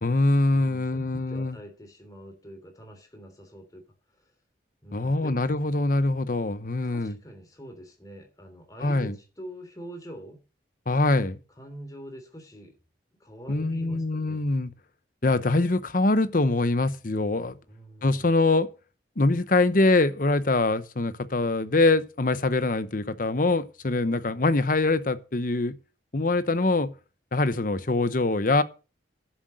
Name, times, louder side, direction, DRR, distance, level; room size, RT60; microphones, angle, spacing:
voice 1, 0.0-1.6 4.9-7.2 8.8-9.1 10.9-11.4 13.5-14.7 15.2-17.6 18.0-18.7 19.2-25.7 26.1-26.9 27.3-28.6, left 2 dB, 45° left, 0.8 m, -24 dB
voice 2, 0.5-3.8 4.2-4.3 4.8-5.4 6.8-10.4 11.6-12.8 13.2-14.4 17.7-18.3, equal, 20° left, 3.0 m, -44 dB
10.5 x 7.7 x 6.2 m
head